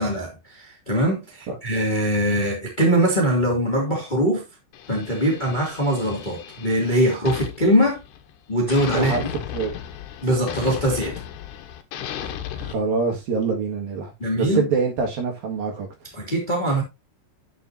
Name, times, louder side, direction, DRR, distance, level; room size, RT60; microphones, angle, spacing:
voice 1, 0.0-4.4 4.9-8.0 8.5-9.2 10.2-11.2 14.2-14.7 16.1-16.8, equal, 15° left, 2.0 m, -22 dB
sound 1, 4.7-8.4 8.7-12.7, left 10 dB, 75° left, 3.1 m, -35 dB
voice 2, 8.9-9.3 9.5-9.7 12.2-14.1 14.4-15.9, right 5 dB, 60° right, 3.4 m, -25 dB
10.5 x 8.1 x 2.8 m
omnidirectional pair, 5.0 m